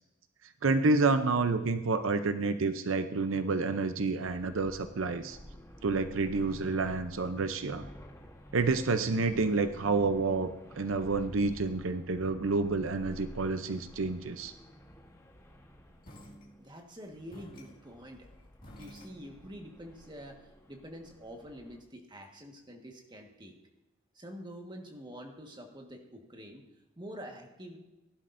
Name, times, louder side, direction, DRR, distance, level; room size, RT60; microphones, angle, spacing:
voice 1, 0.6-5.4 5.8-7.9 8.5-10.5 10.8-14.5, right 3 dB, 85° right, 10 dB, 0.6 m, -29 dB
sound 1, 4.3-21.8, equal, 15° left, 1.2 m, -52 dB
sound 2, 16.0-16.9 17.3-19.7, equal, 45° left, 2.1 m, -52 dB
voice 2, 16.6-18.3 18.8-23.6 24.1-26.6 27.0-27.8, equal, 20° right, 2 dB, 1.5 m, -47 dB
17.0 x 11.0 x 2.6 m, 1.0 s
head